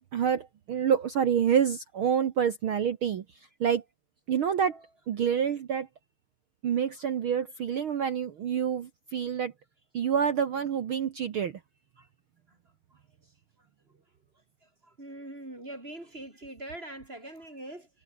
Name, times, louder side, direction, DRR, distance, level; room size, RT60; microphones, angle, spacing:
voice 1, 0.1-3.2 3.6-3.8 4.3-4.8 5.1-5.9 6.6-9.5 9.9-11.5, right 8 dB, 70° right, 1.2 m, -27 dB
voice 2, 14.6-17.9, right 1 dB, 15° right, 5.0 m, -43 dB
omnidirectional pair, 3.9 m